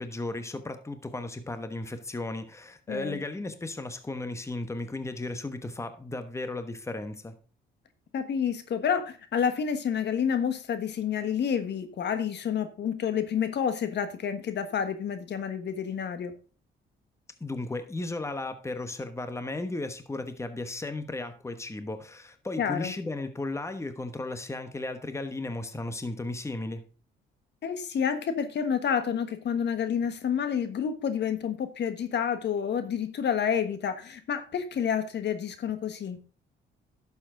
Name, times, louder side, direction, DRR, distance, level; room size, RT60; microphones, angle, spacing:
voice 1, 0.0-7.3 17.4-26.8, left 2 dB, 15° left, 10 dB, 1.1 m, -35 dB
voice 2, 2.9-3.2 8.1-16.3 22.6-22.9 27.6-36.2, left 7 dB, 60° left, 10 dB, 1.3 m, -29 dB
11.5 x 7.1 x 3.8 m, 0.36 s
cardioid pair, 90°, 20 cm